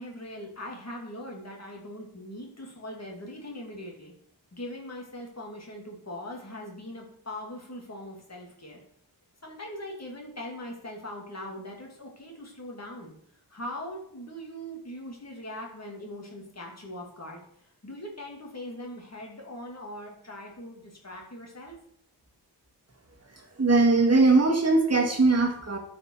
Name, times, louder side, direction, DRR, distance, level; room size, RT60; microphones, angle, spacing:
voice 1, 0.0-4.1 4.5-8.8 9.4-13.1 13.5-17.4 17.8-21.8, left 1 dB, 40° left, -1 dB, 2.7 m, -41 dB
voice 2, 23.6-25.8, right 3 dB, 35° right, 2 dB, 1.9 m, -20 dB
12.5 x 5.1 x 4.7 m, 0.67 s
wide cardioid pair, 105°, 42 cm